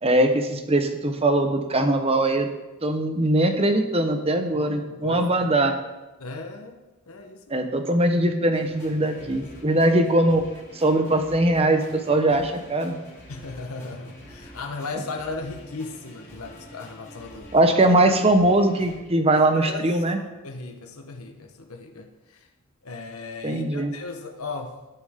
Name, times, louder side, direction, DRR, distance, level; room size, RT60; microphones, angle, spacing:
voice 1, 0.0-2.5 2.8-5.7 7.5-10.4 10.7-13.0 17.5-20.2 23.4-23.9, right 1 dB, 25° right, 6 dB, 1.0 m, -21 dB
voice 2, 4.5-5.5 6.2-6.8 7.1-7.7 9.0-9.8 13.3-17.5 19.3-22.5 22.8-24.7, left 3 dB, 80° left, 3 dB, 1.1 m, -37 dB
sound 1, 8.5-19.0, equal, 15° left, 3.5 m, -46 dB
17.0 x 7.2 x 3.7 m, 1.1 s
head